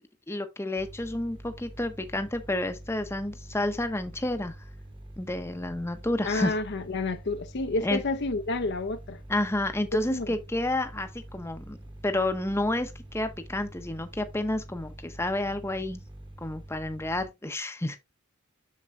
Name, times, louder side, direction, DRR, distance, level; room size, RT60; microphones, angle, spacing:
voice 1, 0.3-4.5 5.2-6.5 7.8-8.0 9.3-11.8 12.0-16.0 16.4-18.0, left 1 dB, 10° left, 0.7 m, -30 dB
sound 1, 0.8-17.3, right 1 dB, 20° right, 1.0 m, -46 dB
voice 2, 6.2-9.2 10.1-10.3, left 3 dB, 50° left, 0.6 m, -30 dB
7.5 x 6.6 x 2.4 m
head